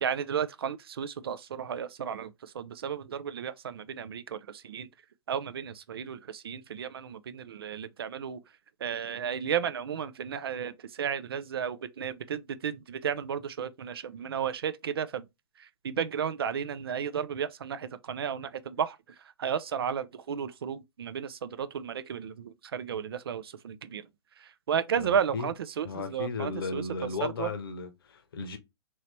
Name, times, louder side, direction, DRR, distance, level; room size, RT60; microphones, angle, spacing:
voice 1, 0.0-4.9 5.3-8.4 8.8-15.3 15.6-19.0 19.4-24.1 24.4-26.8 27.2-27.5, right 8 dB, 60° right, 0.4 m, -33 dB
voice 2, 25.0-25.5 25.8-28.6, left 4 dB, 55° left, 0.8 m, -35 dB
3.0 x 2.7 x 3.0 m
figure-of-eight pair, 115°, 14 cm